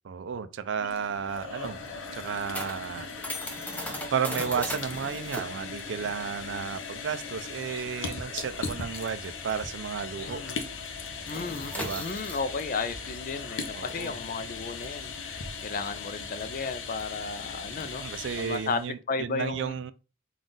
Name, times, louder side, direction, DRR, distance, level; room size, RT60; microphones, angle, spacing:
voice 1, 0.0-1.8 2.1-3.1 4.1-10.4 11.7-12.1 13.7-14.1 17.8-19.9, right 7 dB, 65° right, 0.4 m, -33 dB
sound 1, 0.6-18.9, left 5 dB, 85° left, 0.7 m, -39 dB
sound 2, 1.0-10.0 10.2-10.5 10.8-16.5, equal, 10° left, 0.6 m, -39 dB
voice 2, 10.2-10.6 11.3-18.1 18.4-18.8 19.1-19.8, left 4 dB, 45° left, 0.4 m, -34 dB
3.8 x 2.4 x 3.8 m
head